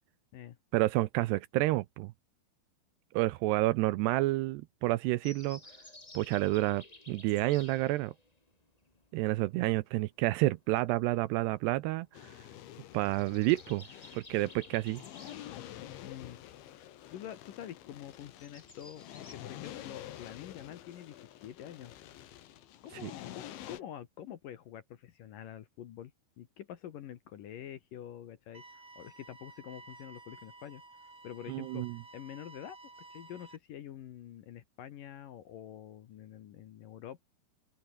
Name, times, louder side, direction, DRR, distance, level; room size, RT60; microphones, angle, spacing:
voice 1, 0.7-2.1 3.1-5.6 6.1-8.1 9.1-12.1 12.9-13.8 14.1-15.0 23.0-23.1 31.5-32.0, right 18 dB, 85° right, 2.6 m, -29 dB
sound 1, 5.2-19.3, left 2 dB, 15° left, 1.2 m, -56 dB
sound 2, 12.1-23.8, left 12 dB, 90° left, 4.2 m, -48 dB
voice 2, 16.0-16.4 16.7-21.9 22.8-26.1 26.4-30.8 31.2-32.8 33.1-37.2, left 10 dB, 65° left, 2.5 m, -47 dB
sound 3, 28.5-33.6, right 2 dB, 25° right, 8.3 m, -53 dB
open air
omnidirectional pair, 5.2 m